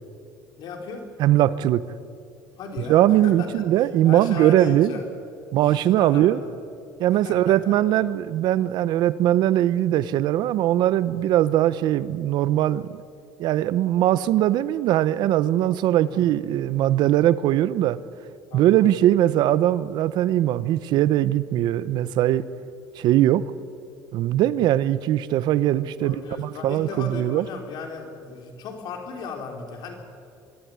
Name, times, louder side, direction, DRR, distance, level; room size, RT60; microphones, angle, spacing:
voice 1, 0.6-1.1 2.6-3.6 4.0-5.1 5.6-6.5 7.1-7.8 15.9-16.3 18.5-18.9 26.0-29.9, left 4 dB, 65° left, 3 dB, 3.9 m, -36 dB
voice 2, 1.2-1.8 2.9-5.0 5.5-6.4 7.0-13.0 13.4-18.0 18.5-22.4 23.0-23.4 24.1-27.5, right 13 dB, 65° right, 16 dB, 0.8 m, -20 dB
23.5 x 13.5 x 9.5 m, 2.4 s
cardioid pair, 130°, 8 cm